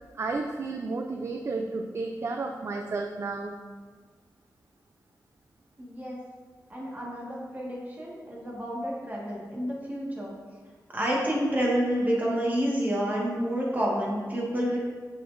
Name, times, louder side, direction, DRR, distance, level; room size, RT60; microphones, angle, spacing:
voice 1, 0.1-3.5, right 3 dB, 45° right, 4 dB, 0.4 m, -32 dB
voice 2, 5.8-6.2 6.7-10.3 10.9-14.8, equal, 25° right, -4 dB, 1.6 m, -29 dB
6.5 x 6.1 x 2.6 m, 1.5 s
wide cardioid pair, 110°, 7 cm